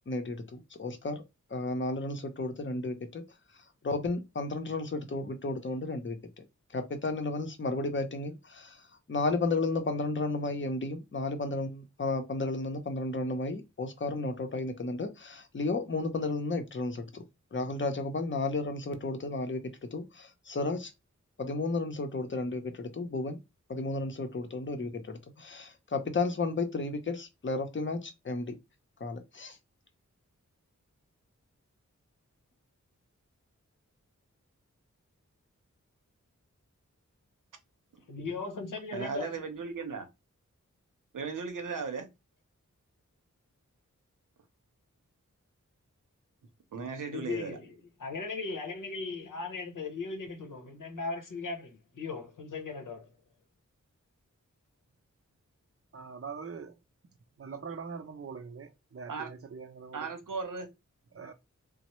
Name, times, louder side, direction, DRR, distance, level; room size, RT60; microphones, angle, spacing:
voice 1, 0.1-1.2 1.5-3.2 3.8-6.4 6.7-17.2 17.5-20.9 21.4-23.4 23.7-28.5 29.0-29.6, left 3 dB, 40° left, 0.7 m, -33 dB
voice 2, 38.1-39.4 47.1-53.1, left 4 dB, 85° left, 0.9 m, -38 dB
voice 3, 38.9-40.1 41.1-42.1 46.7-47.6 59.1-59.3 59.9-60.7, right 5 dB, 90° right, 0.7 m, -36 dB
voice 4, 55.9-56.8 57.4-60.1 61.1-61.3, right 5 dB, 45° right, 0.5 m, -43 dB
3.1 x 2.0 x 2.9 m
wide cardioid pair, 65°, 31 cm